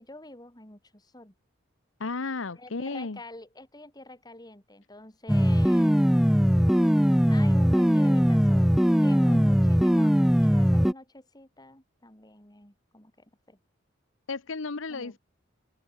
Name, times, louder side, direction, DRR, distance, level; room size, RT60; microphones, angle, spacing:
voice 1, 0.0-1.3 2.6-6.0 7.3-8.7 9.0-13.6 14.9-15.2, left 2 dB, 20° left, 4.0 m, -47 dB
voice 2, 2.0-3.2 9.3-9.4 14.3-15.2, left 3 dB, 75° left, 1.0 m, -33 dB
sound 1, 5.3-10.9, equal, ahead, 0.6 m, -20 dB
open air
head